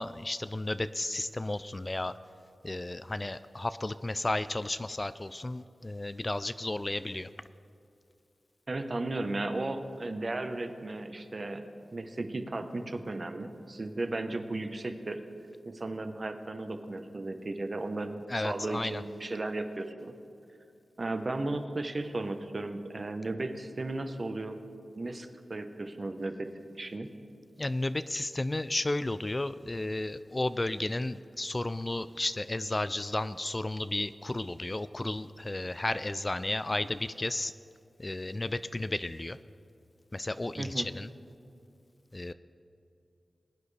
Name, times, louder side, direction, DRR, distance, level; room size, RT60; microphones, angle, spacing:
voice 1, 0.0-2.1 2.6-7.3 18.3-19.0 27.6-37.5 38.0-39.4 40.1-41.1 42.1-42.3, left 2 dB, 30° left, 13 dB, 0.3 m, -33 dB
voice 2, 8.7-11.6 11.9-15.2 15.6-20.1 21.0-24.6 24.9-26.5 26.8-27.1 40.6-40.9, right 2 dB, 45° right, 7 dB, 0.9 m, -35 dB
21.0 x 9.4 x 3.3 m, 2.5 s
wide cardioid pair, 65°, 0 cm